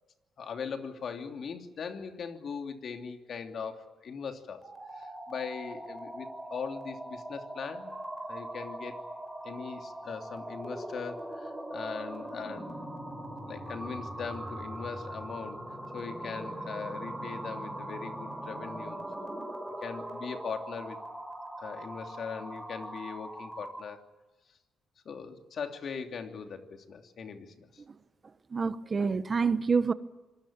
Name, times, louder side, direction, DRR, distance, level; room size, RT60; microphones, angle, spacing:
voice 1, 0.4-4.6 5.0-8.0 8.3-9.0 9.4-12.8 13.4-15.6 15.9-19.3 19.8-21.0 21.6-24.0 25.0-27.8, left 6 dB, 55° left, 2.8 m, -40 dB
sound 1, 4.6-23.9, right 1 dB, ahead, 5.9 m, -41 dB
voice 2, 28.5-29.9, right 5 dB, 35° right, 1.1 m, -27 dB
26.5 x 20.5 x 8.8 m
cardioid pair, 90°, 0 cm